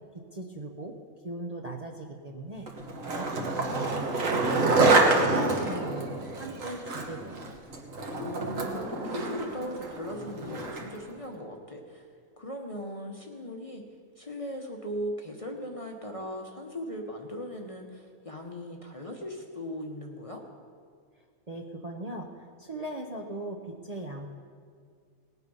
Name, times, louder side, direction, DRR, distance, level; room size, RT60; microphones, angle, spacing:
voice 1, 0.1-1.0 1.2-2.7 3.0-4.9 5.3-6.1 6.4-7.6 21.5-24.3, right 2 dB, 35° right, 0 dB, 0.8 m, -39 dB
Skateboard, 2.7-11.0, right 3 dB, 70° right, 1.8 m, -27 dB
voice 2, 8.1-12.1 12.4-13.8 14.2-20.4, equal, 25° left, 1 dB, 0.9 m, -38 dB
18.5 x 8.3 x 5.4 m, 2.1 s
omnidirectional pair, 1.5 m